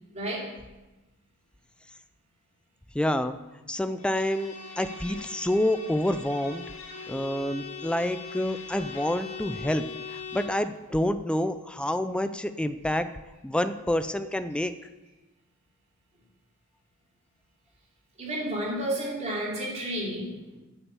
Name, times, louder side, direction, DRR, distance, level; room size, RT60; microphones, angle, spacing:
voice 1, 0.1-0.4 18.2-20.6, right 1 dB, 30° right, -4 dB, 3.0 m, -31 dB
voice 2, 2.9-3.4 3.7-6.6 7.1-13.2 13.4-14.8, left 1 dB, 5° left, 10 dB, 0.4 m, -28 dB
Bowed string instrument, 4.0-10.7, left 5 dB, 85° left, 1.7 m, -41 dB
8.6 x 7.2 x 6.9 m, 1.1 s
head